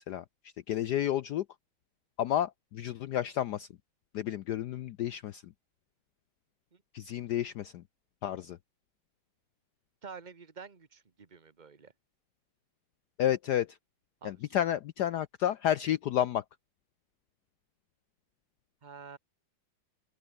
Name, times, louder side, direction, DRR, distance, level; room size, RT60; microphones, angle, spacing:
voice 1, 0.7-1.4 2.2-3.7 4.1-5.4 6.9-7.8 8.2-8.6 13.2-13.8 14.2-16.4, left 11 dB, 70° left, 1.0 m, -31 dB
voice 2, 10.0-11.9 14.2-14.6 18.8-19.2, right 5 dB, 25° right, 1.3 m, -49 dB
open air
omnidirectional pair, 2.3 m